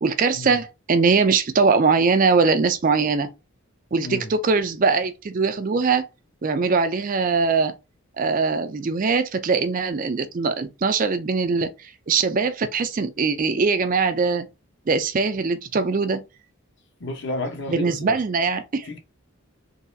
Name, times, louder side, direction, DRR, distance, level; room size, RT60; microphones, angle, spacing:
voice 1, 0.0-3.3 3.9-6.1 6.4-7.7 8.2-14.5 14.9-16.2 17.7-18.9, right 4 dB, 40° right, 0.4 m, -21 dB
voice 2, 4.0-4.3 17.0-18.2 18.8-19.0, left 2 dB, 55° left, 0.9 m, -31 dB
3.9 x 2.9 x 2.7 m
head